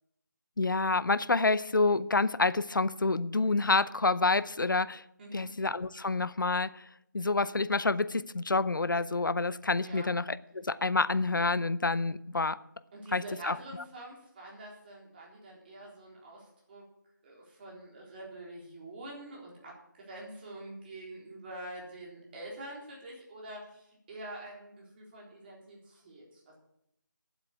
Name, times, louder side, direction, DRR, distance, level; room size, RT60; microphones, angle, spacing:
voice 1, 0.6-5.0 5.3-6.8 7.1-12.6 13.1-13.6, left 3 dB, 85° left, 0.6 m, -28 dB
voice 2, 12.9-16.8 17.2-26.5, right 1 dB, 30° right, 3.9 m, -46 dB
9.2 x 8.1 x 8.4 m
figure-of-eight pair, 160°, 11 cm